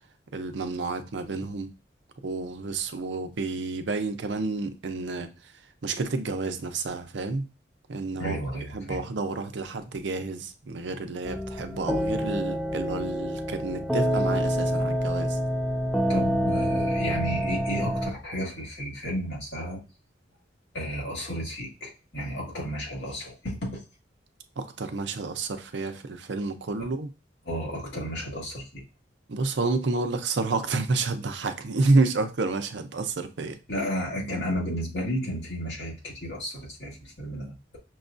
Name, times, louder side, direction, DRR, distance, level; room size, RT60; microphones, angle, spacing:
voice 1, 0.3-1.7 2.2-5.5 5.8-7.4 7.9-8.4 8.7-15.4 24.6-27.1 29.3-33.6, right 3 dB, 75° right, 0.6 m, -29 dB
voice 2, 8.2-9.0 16.1-19.8 20.7-23.8 27.5-28.8 33.7-37.8, equal, 70° left, 1.8 m, -33 dB
sound 1, 11.2-18.1, equal, ahead, 0.3 m, -27 dB
6.2 x 2.3 x 2.5 m
head